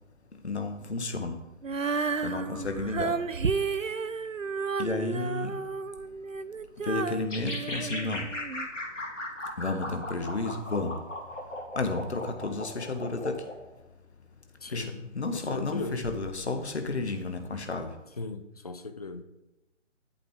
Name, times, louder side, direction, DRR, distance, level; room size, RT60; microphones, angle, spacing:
voice 1, 0.4-1.3 2.2-3.2 4.8-5.6 6.9-8.2 9.6-11.0 11.7-13.4 14.7-17.9, left 3 dB, 60° left, 6 dB, 1.6 m, -32 dB
Female singing, 1.6-8.7, right 5 dB, 85° right, 0.7 m, -32 dB
sound 1, 7.3-13.6, left 1 dB, 75° left, 2.6 m, -37 dB
voice 2, 14.6-16.1 18.2-19.2, left 3 dB, 30° left, 9 dB, 0.6 m, -38 dB
11.5 x 8.3 x 3.8 m, 0.99 s
figure-of-eight pair, 145°, 38 cm